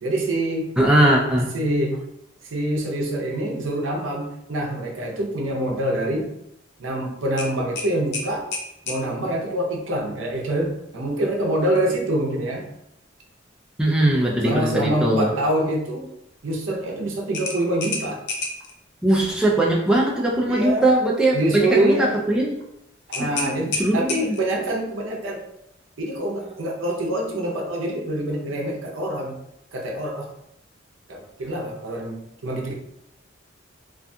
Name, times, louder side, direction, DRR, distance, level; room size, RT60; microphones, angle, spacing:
voice 1, 0.0-0.7 1.5-2.0 2.4-6.3 6.8-8.5 8.9-12.7 14.4-16.1 16.4-18.2 20.5-20.9 21.3-22.2 23.1-25.4 26.0-29.4 29.7-30.3 31.1-32.7, right 1 dB, 85° right, 0 dB, 0.6 m, -25 dB
voice 2, 0.8-1.5 13.8-15.3 19.0-22.5 23.2-24.4, right 1 dB, 5° right, -3 dB, 0.3 m, -20 dB
sound 1, 7.4-9.0 11.7-11.9 12.3-12.4 17.3-18.7 23.1-24.6, left 3 dB, 60° left, 0.4 m, -30 dB
2.4 x 2.2 x 2.6 m, 0.80 s
head